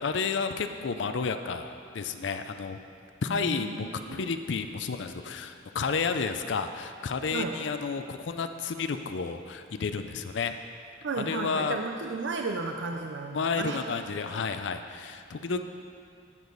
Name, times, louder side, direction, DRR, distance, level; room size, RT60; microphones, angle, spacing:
voice 1, 0.0-2.8 3.2-10.5 11.2-11.8 13.3-15.6, left 5 dB, 70° left, 8 dB, 0.5 m, -31 dB
voice 2, 3.3-4.3 7.3-7.6 11.0-13.8 15.5-15.6, right 3 dB, 70° right, 3 dB, 0.6 m, -34 dB
11.5 x 8.3 x 4.0 m, 2.3 s
head